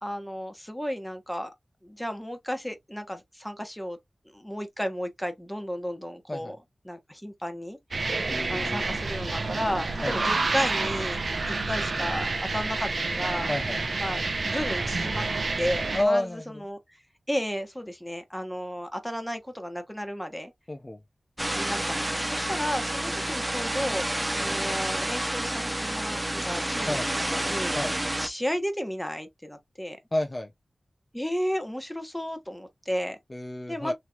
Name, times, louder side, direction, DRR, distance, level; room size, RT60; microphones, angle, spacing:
voice 1, 0.0-1.5 1.8-4.0 4.3-6.6 6.8-8.2 8.5-11.2 11.5-13.5 14.0-16.8 17.3-20.5 21.5-30.0 31.1-33.2 33.7-33.9, equal, 5° left, 1.2 m, -33 dB
sound 1, 7.9-16.0, right 3 dB, 70° right, 0.7 m, -29 dB
voice 2, 8.3-8.9 10.0-10.3 13.5-13.8 15.9-16.4 20.7-21.0 26.9-27.1 27.7-27.9 30.1-30.5 33.3-33.9, left 1 dB, 30° left, 0.5 m, -29 dB
sound 2, 21.4-28.3, right 1 dB, 20° right, 0.7 m, -29 dB
3.2 x 2.9 x 2.4 m
cardioid pair, 40°, 0 cm